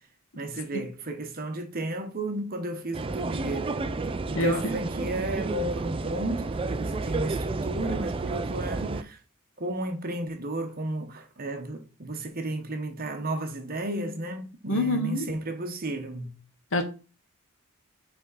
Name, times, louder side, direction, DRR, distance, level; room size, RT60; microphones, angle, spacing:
voice 1, 0.3-3.8 4.3-9.2 9.6-16.4, right 1 dB, 45° right, 1.0 m, -33 dB
sound 1, 2.9-9.0, right 3 dB, 25° right, 0.4 m, -31 dB
voice 2, 14.7-15.3 16.7-16.8, left 1 dB, 65° left, 1.4 m, -25 dB
8.1 x 3.5 x 4.1 m
head